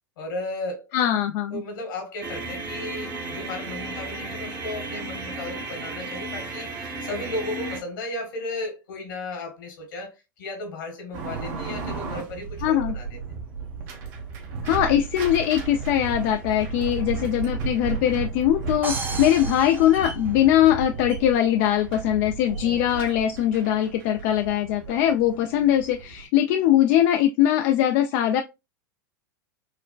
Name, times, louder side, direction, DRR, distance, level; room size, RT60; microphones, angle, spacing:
voice 1, 0.2-0.9 1.5-13.2 17.1-17.3 22.5-22.8 24.9-25.0, left 2 dB, 70° left, 1.5 m, -35 dB
voice 2, 0.9-1.6 12.6-12.9 14.6-28.4, left 11 dB, 55° left, 0.4 m, -21 dB
sound 1, 2.2-7.8, right 2 dB, 45° right, 1.0 m, -34 dB
sound 2, 11.1-26.2, right 5 dB, 60° right, 1.0 m, -34 dB
sound 3, 18.8-20.8, right 4 dB, 20° right, 0.5 m, -34 dB
4.8 x 2.1 x 2.2 m
hypercardioid pair, 95°, 11 cm